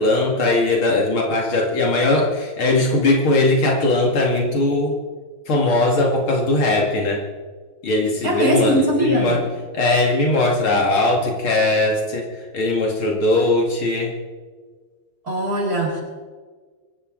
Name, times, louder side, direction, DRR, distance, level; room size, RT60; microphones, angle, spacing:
voice 1, 0.0-5.0 5.5-7.2 7.8-9.4 9.7-14.1, left 2 dB, 80° left, 0 dB, 3.1 m, -19 dB
voice 2, 8.2-9.3 15.2-16.0, equal, 45° right, -3 dB, 6.4 m, -20 dB
24.5 x 14.0 x 3.9 m, 1.4 s
omnidirectional pair, 2.3 m